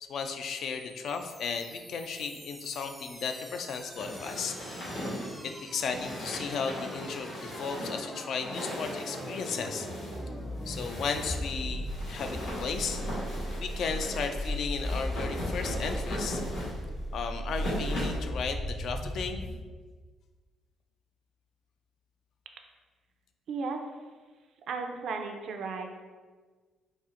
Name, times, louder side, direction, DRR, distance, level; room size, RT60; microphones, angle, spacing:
voice 1, 0.0-4.5 5.4-9.9 10.7-13.0 13.6-16.4 17.1-19.4, left 5 dB, 65° left, 6 dB, 0.3 m, -35 dB
sound 1, 0.6-19.6, equal, 5° right, 0.4 m, -38 dB
sound 2, 4.0-18.3, equal, 85° left, 1.4 m, -39 dB
voice 2, 23.5-23.8 24.7-26.0, right 4 dB, 65° right, 4 dB, 0.4 m, -35 dB
4.1 x 2.4 x 2.5 m, 1.4 s
cardioid pair, 90°, 0 cm